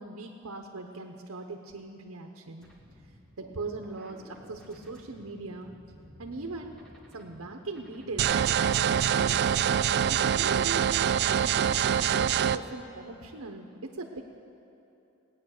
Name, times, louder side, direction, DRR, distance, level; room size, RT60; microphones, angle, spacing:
voice 1, 0.0-2.7 3.4-5.7 6.2-6.7 7.1-9.4 10.1-11.1 11.4-14.2, right 3 dB, 90° right, 3 dB, 1.0 m, -40 dB
sound 1, 2.6-12.8, equal, 5° left, 1.6 m, -53 dB
sound 2, 8.2-12.6, right 9 dB, 50° right, 0.3 m, -25 dB
18.0 x 9.4 x 6.6 m, 2.9 s
head